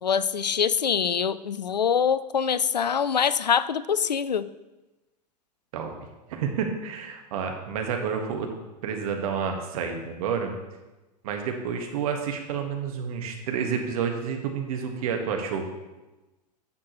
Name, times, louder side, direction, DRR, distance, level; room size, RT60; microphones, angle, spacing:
voice 1, 0.0-4.5, left 7 dB, 90° left, 16 dB, 0.4 m, -24 dB
voice 2, 6.3-8.5 8.8-10.5 11.2-15.7, right 6 dB, 60° right, 4 dB, 1.6 m, -29 dB
11.0 x 7.4 x 3.1 m, 1.1 s
figure-of-eight pair, 90°, 21 cm